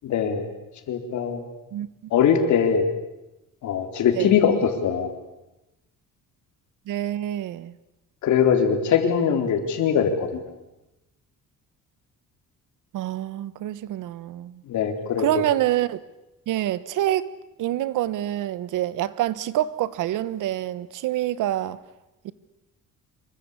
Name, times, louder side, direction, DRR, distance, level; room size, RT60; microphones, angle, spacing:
voice 1, 0.0-0.5 0.9-1.5 2.1-2.9 3.6-5.1 8.2-10.4 14.7-15.4, left 7 dB, 60° left, 4.1 m, -21 dB
voice 2, 6.9-7.7 12.9-14.6 15.2-16.0 16.5-17.3 17.6-21.8 22.2-22.3, right 13 dB, 70° right, 1.4 m, -26 dB
26.5 x 24.0 x 8.4 m
cardioid pair, 175°, 33 cm